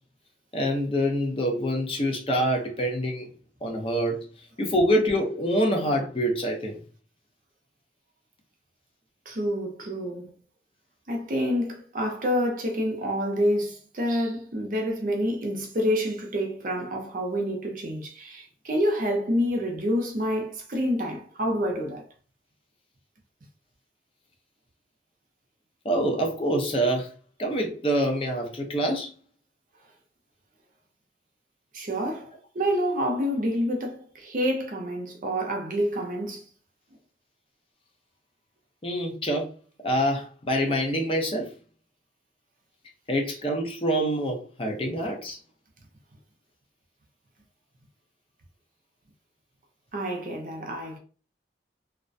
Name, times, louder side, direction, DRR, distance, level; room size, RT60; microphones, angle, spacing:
voice 1, 0.5-3.3 3.6-4.3 4.6-6.8 25.8-27.1 27.4-29.1 38.8-39.5 39.8-41.5 43.1-45.4, equal, 30° left, 0.5 m, -26 dB
voice 2, 9.3-10.3 11.1-22.1 31.7-36.4 49.9-51.0, equal, 45° right, 0.5 m, -28 dB
2.3 x 2.1 x 2.6 m
head